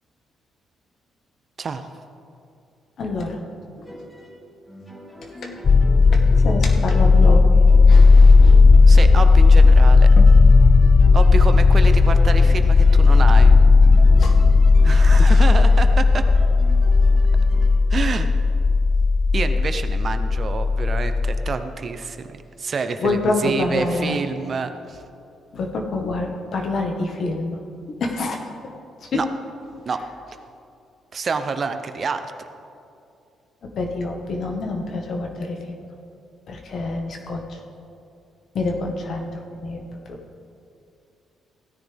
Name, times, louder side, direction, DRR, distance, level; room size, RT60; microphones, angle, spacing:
voice 1, 1.6-1.9 8.9-10.1 11.1-13.6 14.8-16.2 17.9-18.3 19.3-25.0 29.1-29.3 29.9-30.0 31.1-32.3, right 5 dB, 45° right, 9 dB, 0.7 m, -27 dB
voice 2, 3.0-3.4 5.2-5.5 6.4-8.6 10.2-10.3 14.2-14.4 15.1-15.4 23.0-24.2 25.5-27.6 28.0-29.2 33.6-35.8 36.5-37.6 38.5-40.2, left 3 dB, 60° left, 2 dB, 1.5 m, -27 dB
sound 1, 3.9-17.7, equal, 10° left, 2.4 m, -41 dB
sound 2, 5.6-21.5, left 4 dB, 40° left, 0.3 m, -13 dB
16.0 x 9.8 x 3.5 m, 2.6 s
cardioid pair, 90°, 0 cm